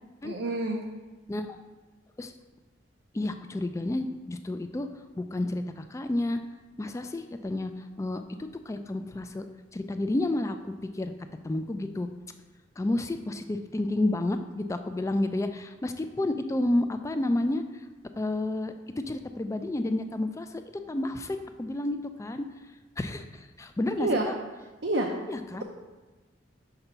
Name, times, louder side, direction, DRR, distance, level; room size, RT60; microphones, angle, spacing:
voice 1, 0.2-0.8 24.0-24.3 24.8-25.1, right 2 dB, 65° right, 0 dB, 0.6 m, -27 dB
voice 2, 3.1-4.9 5.2-6.4 6.8-9.5 9.7-11.1 11.4-12.1 12.8-17.6 18.2-18.7 19.1-20.6 20.9-22.5 23.0-24.4 25.3-25.6, left 1 dB, 15° left, 8 dB, 0.3 m, -30 dB
5.9 x 3.9 x 5.5 m, 1.2 s
head